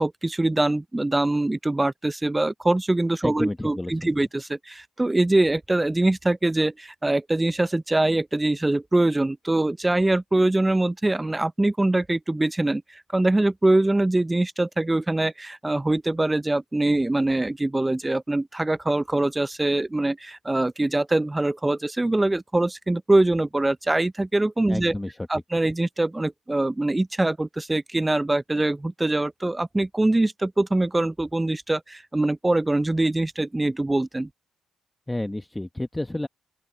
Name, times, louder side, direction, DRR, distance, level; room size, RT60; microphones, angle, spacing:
voice 1, 0.0-24.9 25.3-34.3, right 2 dB, 15° right, 0.4 m, -23 dB
voice 2, 3.2-4.2 24.7-25.3 35.1-36.3, left 1 dB, 10° left, 1.1 m, -30 dB
open air
supercardioid pair, 65°, 0 cm